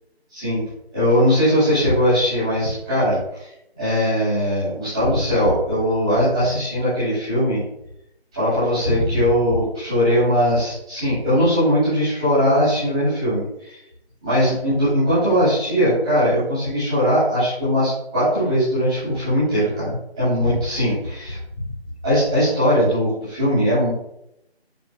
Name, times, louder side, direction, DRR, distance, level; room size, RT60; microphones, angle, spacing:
voice 1, 0.3-0.6 0.9-3.5 3.8-7.6 8.3-13.8 14.2-21.4 22.0-23.9, equal, 5° right, -15 dB, 2.2 m, -20 dB
10.5 x 4.7 x 2.2 m, 0.82 s
figure-of-eight pair, 180°, 32 cm